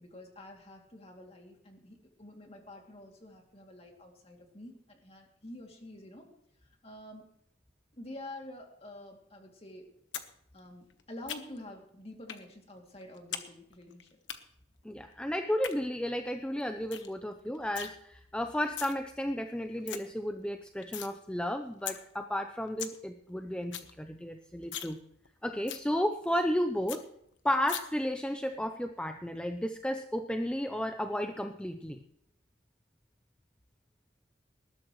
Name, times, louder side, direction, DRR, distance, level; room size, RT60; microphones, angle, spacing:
voice 1, 0.0-6.3 6.8-7.3 7.9-9.9 10.5-14.1, left 1 dB, 35° left, 1 dB, 2.6 m, -48 dB
sound 1, 10.1-10.3 10.6-11.7 12.3-12.4 12.8-13.5 13.7-14.4 15.4-15.7 16.2-16.3 16.6-16.7 16.9-17.1 17.4-17.9 18.5-18.9 19.4-19.5 19.6-20.0 20.4-21.1 21.5-21.6 21.9-22.0 22.4-22.5 22.6-23.0 23.3-23.4 23.6-23.9 24.2-24.3 24.6-24.9 25.2-25.3 25.7-25.8 26.2-26.3 26.6-26.7 26.9-27.0 27.7-27.8, left 10 dB, 85° left, 1.1 m, -39 dB
voice 2, 14.8-25.0 25.4-27.1 27.4-32.0, equal, 5° left, 6 dB, 0.5 m, -33 dB
19.5 x 12.5 x 3.1 m, 0.74 s
head